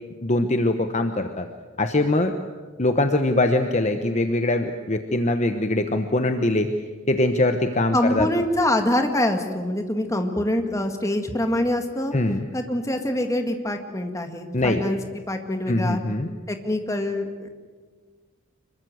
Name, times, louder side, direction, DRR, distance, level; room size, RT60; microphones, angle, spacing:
voice 1, 0.2-1.5 1.8-2.4 2.8-6.7 7.1-8.3 12.1-12.5 14.5-14.8 15.7-16.3, left 2 dB, 35° left, 7 dB, 1.1 m, -22 dB
voice 2, 7.9-12.1 12.5-15.0 15.3-16.0 16.5-17.3, left 1 dB, 15° left, 5 dB, 2.0 m, -24 dB
25.5 x 22.5 x 7.9 m, 1.5 s
head